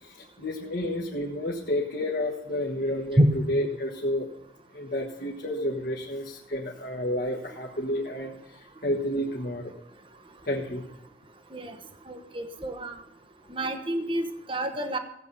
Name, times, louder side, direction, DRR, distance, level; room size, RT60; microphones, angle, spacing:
voice 1, 0.0-4.3 4.7-9.7 10.4-10.8, left 1 dB, 50° left, -2 dB, 1.4 m, -30 dB
voice 2, 12.1-13.0 13.5-15.0, right 1 dB, 30° right, 7 dB, 1.0 m, -27 dB
15.5 x 8.1 x 5.6 m, 0.83 s
head